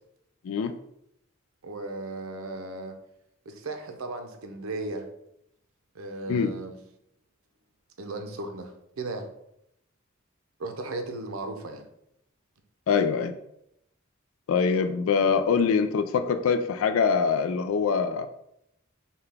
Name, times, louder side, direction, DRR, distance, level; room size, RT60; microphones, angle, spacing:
voice 1, 1.6-3.0 3.5-5.1 5.9-6.8 8.0-9.3 10.6-11.9, right 2 dB, 90° right, 5 dB, 0.6 m, -36 dB
voice 2, 12.9-13.3 14.5-18.3, left 6 dB, 80° left, 9 dB, 0.3 m, -24 dB
5.6 x 2.3 x 3.4 m, 0.78 s
head